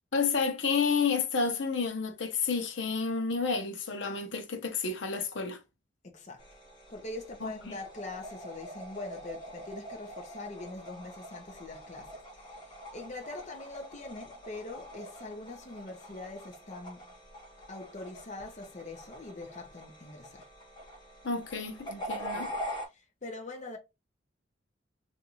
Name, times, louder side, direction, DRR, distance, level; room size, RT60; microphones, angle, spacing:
voice 1, 0.1-5.6 7.4-7.7 21.2-22.5, left 5 dB, 80° left, 0.8 m, -30 dB
voice 2, 6.0-6.5 6.9-17.0 17.7-20.5 22.3-22.5 22.9-23.8, left 2 dB, 40° left, 0.7 m, -43 dB
sound 1, 6.4-22.9, equal, 25° left, 1.5 m, -44 dB
3.6 x 2.6 x 2.9 m
head